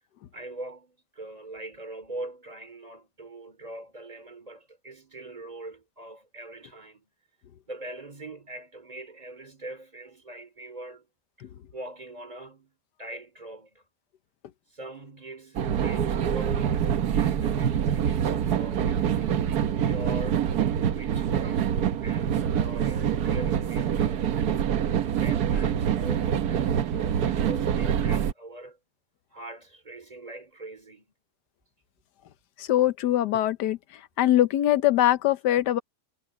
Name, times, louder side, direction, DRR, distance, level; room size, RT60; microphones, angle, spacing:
voice 1, 0.3-7.1 7.7-11.1 11.4-13.9 14.7-19.5 19.9-20.6 20.9-24.8 25.2-28.8 29.3-31.1, right 2 dB, 20° right, 3.0 m, -42 dB
sound 1, 15.6-28.3, right 9 dB, 70° right, 1.5 m, -25 dB
voice 2, 32.7-33.8 34.2-35.8, left 13 dB, 80° left, 1.4 m, -22 dB
omnidirectional pair, 1.8 m